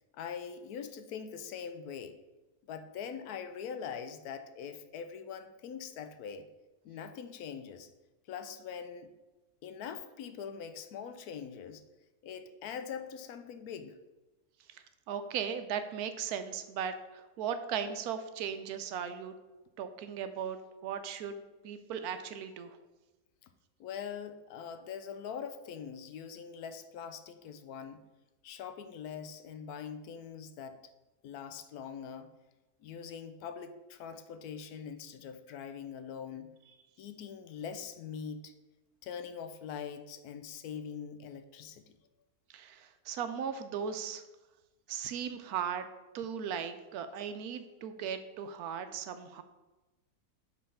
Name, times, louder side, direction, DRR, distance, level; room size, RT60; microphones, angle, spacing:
voice 1, 0.1-2.2 2.7-6.5 6.8-7.9 8.3-9.1 9.6-11.8 12.2-14.0 23.8-28.0 28.4-30.8 31.2-32.3 32.8-36.6 37.0-38.5 39.0-41.8, left 7 dB, 75° left, 9 dB, 1.0 m, -43 dB
voice 2, 14.7-19.3 19.8-21.4 21.6-22.8 42.5-44.2 44.9-45.8 46.1-49.4, right 7 dB, 75° right, 9 dB, 1.1 m, -37 dB
5.2 x 4.0 x 5.5 m, 1.1 s
omnidirectional pair, 1.6 m